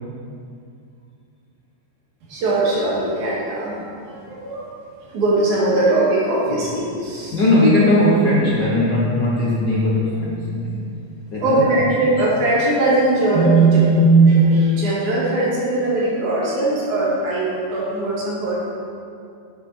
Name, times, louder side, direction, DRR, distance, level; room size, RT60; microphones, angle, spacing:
voice 1, 2.3-4.7 5.1-7.4 11.4-18.6, right 2 dB, 85° right, -5 dB, 3.6 m, -19 dB
voice 2, 7.3-10.8 11.3-11.8, left 1 dB, 65° left, -4 dB, 1.0 m, -18 dB
9.9 x 8.8 x 4.3 m, 2.4 s
omnidirectional pair, 3.3 m